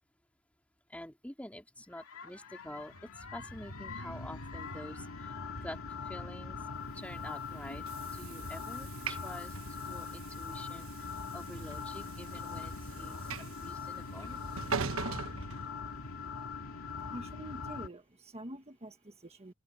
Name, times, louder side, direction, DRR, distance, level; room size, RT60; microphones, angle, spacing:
voice 1, 0.9-5.8 6.0-6.6 6.9-7.8 8.1-11.1 11.3-14.4, left 1 dB, 5° left, 3.2 m, -47 dB
sound 1, 2.0-17.9, left 4 dB, 80° left, 2.4 m, -42 dB
Train / Sliding door, 7.0-16.3, right 5 dB, 75° right, 1.2 m, -42 dB
voice 2, 16.8-19.5, right 1 dB, 30° right, 1.4 m, -47 dB
open air
head